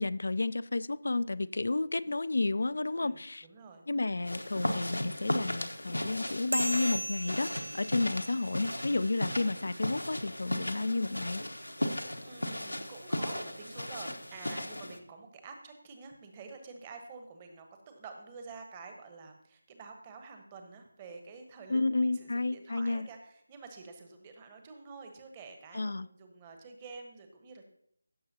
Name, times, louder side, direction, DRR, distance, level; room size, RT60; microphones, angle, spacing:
voice 1, 0.0-3.5 3.9-11.4 21.7-23.1 25.7-26.1, left 2 dB, 60° left, 0.4 m, -31 dB
voice 2, 2.9-3.8 11.8-27.7, right 4 dB, 20° right, 1.1 m, -49 dB
sound 1, 4.2-15.0, left 1 dB, 90° left, 1.1 m, -36 dB
sound 2, 6.5-9.4, right 1 dB, 65° right, 0.4 m, -38 dB
16.0 x 6.5 x 2.8 m
figure-of-eight pair, 165°, 0 cm